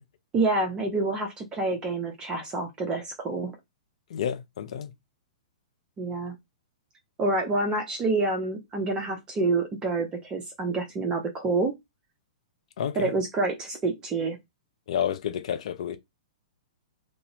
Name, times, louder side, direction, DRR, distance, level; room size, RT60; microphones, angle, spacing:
voice 1, 0.3-3.6 6.0-6.4 7.2-11.7 13.0-14.4, right 3 dB, 20° right, 0.6 m, -27 dB
voice 2, 4.1-4.9 12.8-13.1 14.9-16.0, left 9 dB, 60° left, 0.5 m, -30 dB
2.5 x 2.0 x 2.7 m
figure-of-eight pair, 115°, 4 cm